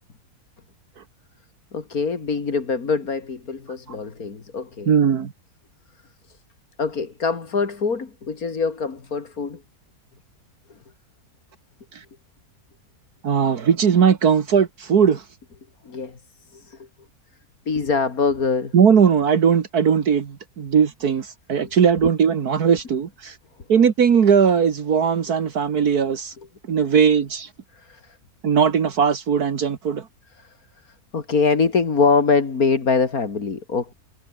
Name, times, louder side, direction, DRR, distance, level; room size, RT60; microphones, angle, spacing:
voice 1, 1.7-4.9 6.8-9.6 15.9-16.2 16.5-16.8 17.7-18.7 21.6-21.7 27.7-28.2 30.4-30.5 31.1-33.9, left 4 dB, 60° left, 2.9 m, -23 dB
voice 2, 4.9-5.3 11.9-12.0 13.2-15.2 18.7-23.4 23.7-26.3 26.7-27.5 28.4-30.1, right 7 dB, 70° right, 2.0 m, -19 dB
omnidirectional pair, 1.7 m